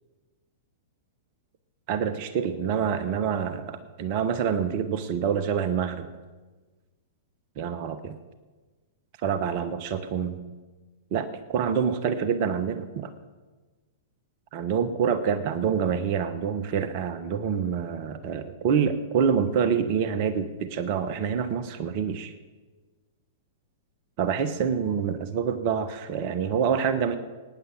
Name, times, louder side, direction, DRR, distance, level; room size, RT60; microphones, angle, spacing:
voice 1, 1.9-6.1 7.6-8.2 9.2-10.4 11.1-13.1 14.5-22.3 24.2-27.2, right 7 dB, 45° right, 12 dB, 1.1 m, -26 dB
17.0 x 9.7 x 6.1 m, 1.3 s
figure-of-eight pair, 100°, 0 cm